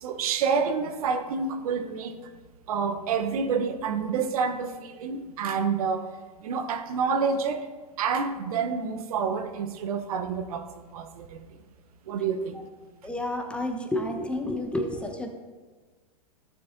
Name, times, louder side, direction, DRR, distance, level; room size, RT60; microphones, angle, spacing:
voice 1, 0.0-2.2 2.7-6.1 6.4-7.7 8.0-10.7 10.9-11.4 12.1-12.6, right 5 dB, 70° right, 9 dB, 0.9 m, -28 dB
voice 2, 13.0-15.3, left 1 dB, 5° left, 3 dB, 1.0 m, -30 dB
14.5 x 6.8 x 2.6 m, 1.4 s
hypercardioid pair, 115°, 19 cm